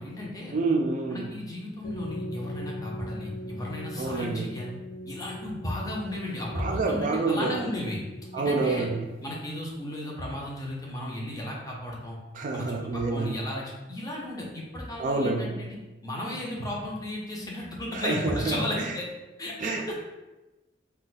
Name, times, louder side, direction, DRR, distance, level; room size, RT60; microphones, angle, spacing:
voice 1, 0.0-0.6 1.1-4.7 5.0-8.0 8.4-8.9 9.2-12.2 12.5-15.8 16.0-19.0 19.4-19.9, left 1 dB, 20° left, -3 dB, 0.6 m, -34 dB
voice 2, 0.5-1.3 4.0-4.5 6.5-7.6 8.3-9.0 12.3-13.3 15.0-15.5 17.9-18.9 19.6-19.9, right 3 dB, 45° right, 1 dB, 0.4 m, -28 dB
sound 1, 1.8-9.3, left 1 dB, 85° left, 0.9 m, -40 dB
2.5 x 2.2 x 3.9 m, 1.1 s
head